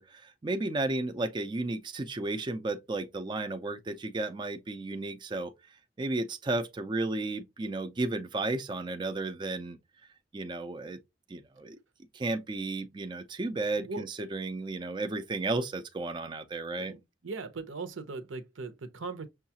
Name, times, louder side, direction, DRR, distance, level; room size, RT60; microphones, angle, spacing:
voice 1, 0.0-9.8 10.3-11.0 11.3-11.8 12.1-16.9, right 2 dB, 25° right, 0.4 m, -33 dB
voice 2, 16.8-19.3, right 3 dB, 80° right, 0.7 m, -39 dB
6.3 x 2.3 x 2.8 m
head